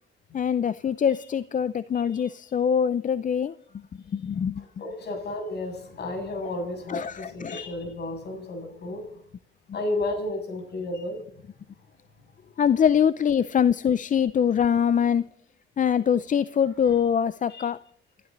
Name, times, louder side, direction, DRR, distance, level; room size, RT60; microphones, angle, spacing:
voice 1, 0.3-3.5 4.1-4.6 6.9-7.6 12.6-15.2 15.8-17.8, left 8 dB, 40° left, 0.6 m, -23 dB
voice 2, 1.9-2.3 4.6-9.2 9.7-11.2 16.9-17.0 17.5-17.7, left 2 dB, 55° left, 6.9 m, -33 dB
28.0 x 12.5 x 4.0 m
cardioid pair, 90°, 20 cm